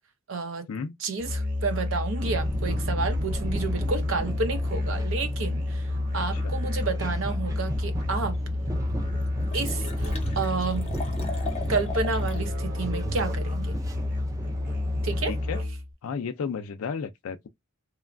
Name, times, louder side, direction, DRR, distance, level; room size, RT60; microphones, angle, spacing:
voice 1, 0.3-0.7 1.0-5.9 6.1-8.4 9.5-10.9 11.7-13.8 15.0-15.3, right 4 dB, 65° right, 0.6 m, -30 dB
Musical instrument, 1.2-15.9, left 2 dB, 40° right, 0.9 m, -29 dB
sound 1, 2.2-15.6, right 1 dB, 15° right, 0.4 m, -36 dB
Liquid, 8.3-8.4 8.9-9.0 9.2-12.4 12.8-12.9, left 5 dB, 30° left, 0.6 m, -39 dB
voice 2, 15.3-15.6 16.0-17.5, left 6 dB, 85° left, 0.4 m, -33 dB
3.0 x 2.2 x 2.4 m
head